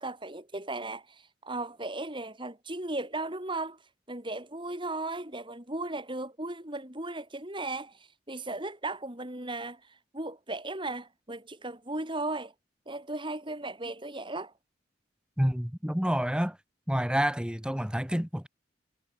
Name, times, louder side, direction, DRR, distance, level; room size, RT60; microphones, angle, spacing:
voice 1, 0.0-3.8 4.1-12.5 12.8-14.5, right 2 dB, 25° right, 4.8 m, -36 dB
voice 2, 15.4-16.6 16.9-18.5, equal, 5° right, 1.5 m, -28 dB
head